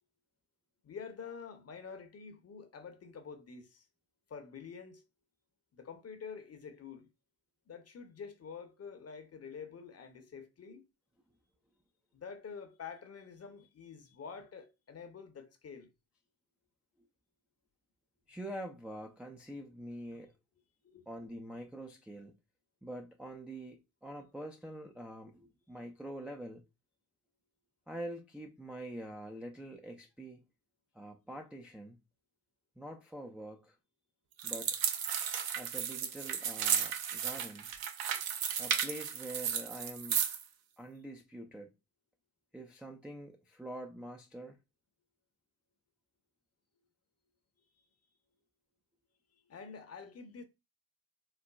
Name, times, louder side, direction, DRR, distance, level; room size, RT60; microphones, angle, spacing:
voice 1, 0.8-3.9 4.3-5.0 5.7-7.1 7.7-10.8 12.1-15.9 20.8-21.1 49.3-50.4, left 6 dB, 35° left, 0.7 m, -47 dB
voice 2, 18.3-20.3 21.1-22.3 22.8-26.6 27.9-30.4 30.9-32.0 32.8-33.7 34.4-34.8 35.6-37.7 38.6-40.2 40.8-41.7 42.5-44.6, right 1 dB, 5° right, 0.3 m, -45 dB
sound 1, 34.4-40.4, right 8 dB, 50° right, 0.6 m, -34 dB
4.0 x 2.1 x 2.2 m
hypercardioid pair, 50°, 46 cm